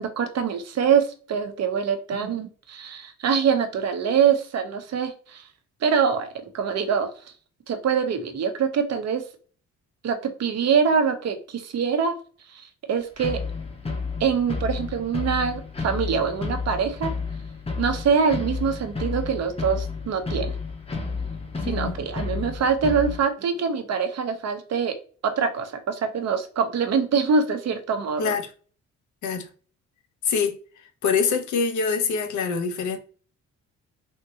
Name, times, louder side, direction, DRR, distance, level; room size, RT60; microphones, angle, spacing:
voice 1, 0.0-5.5 5.8-7.1 7.7-9.2 10.0-12.2 12.5-13.4 14.2-17.1 17.8-20.5 21.6-24.9 25.2-28.3, right 6 dB, 60° right, 0.8 m, -24 dB
sound 1, 13.2-23.2, left 4 dB, 20° left, 0.7 m, -31 dB
voice 2, 28.2-28.5 29.2-29.5 30.2-30.5 31.0-33.0, left 5 dB, 75° left, 0.7 m, -25 dB
3.6 x 2.6 x 2.7 m
cardioid pair, 90°, 30 cm